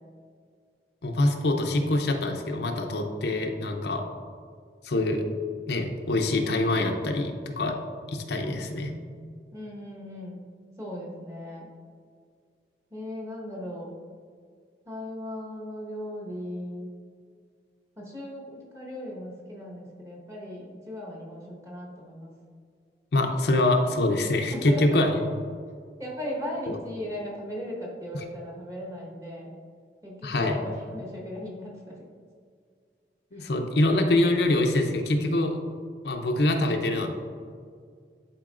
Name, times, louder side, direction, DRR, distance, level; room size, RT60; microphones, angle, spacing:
voice 1, 1.0-4.0 4.8-5.2 5.7-7.8 8.1-8.9 23.1-25.2 26.7-26.8 28.1-28.2 30.2-30.6 33.3-35.6 36.0-37.2, left 2 dB, 70° left, 3 dB, 0.6 m, -25 dB
voice 2, 9.5-10.4 10.8-11.7 12.9-13.9 14.9-16.9 18.0-22.3 24.5-25.1 26.0-29.5 30.0-31.8, left 1 dB, 20° right, -3 dB, 1.2 m, -37 dB
10.5 x 4.5 x 2.5 m, 2.1 s
head